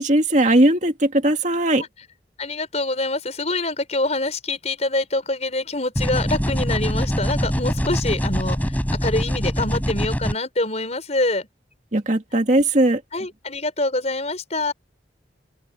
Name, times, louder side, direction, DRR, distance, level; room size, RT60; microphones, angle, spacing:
voice 1, 0.0-1.8 11.9-13.0, right 1 dB, 45° right, 2.3 m, -18 dB
voice 2, 2.4-11.5 13.1-14.7, left 2 dB, 40° left, 5.7 m, -25 dB
sound 1, 6.0-10.3, equal, 10° left, 4.5 m, -23 dB
open air
head